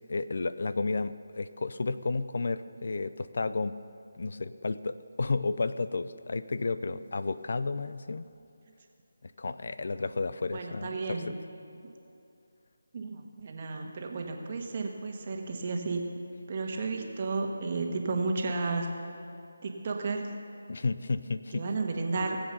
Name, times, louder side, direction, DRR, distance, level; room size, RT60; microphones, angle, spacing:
voice 1, 0.1-3.7 4.2-8.3 9.2-11.4 20.7-21.6, left 3 dB, 60° left, 14 dB, 0.5 m, -32 dB
voice 2, 10.5-11.3 12.9-16.1 16.5-18.9 19.6-20.3 21.5-22.4, right 3 dB, 40° right, 2 dB, 1.6 m, -32 dB
19.5 x 7.9 x 6.9 m, 2.7 s
figure-of-eight pair, 160°, 0 cm